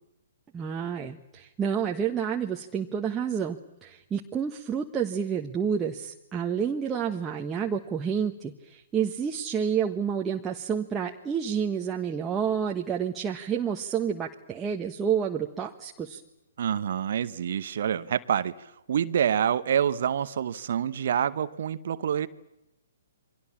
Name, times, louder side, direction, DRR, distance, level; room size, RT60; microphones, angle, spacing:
voice 1, 0.5-16.2, right 7 dB, 15° right, 0 dB, 1.3 m, -29 dB
voice 2, 16.6-18.5 18.9-22.3, right 9 dB, 50° right, 13 dB, 1.0 m, -27 dB
28.5 x 23.5 x 7.4 m, 0.91 s
figure-of-eight pair, 125°, 0 cm